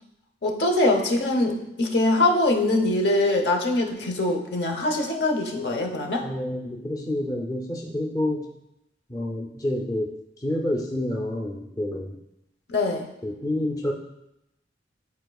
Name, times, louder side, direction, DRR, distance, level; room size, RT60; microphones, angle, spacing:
voice 1, 0.4-6.3 12.7-13.1, left 2 dB, 70° left, 2 dB, 0.9 m, -23 dB
voice 2, 6.2-8.5 9.1-12.2 13.2-13.9, left 1 dB, 20° left, 0 dB, 0.6 m, -28 dB
10.5 x 4.3 x 2.3 m, 0.85 s
head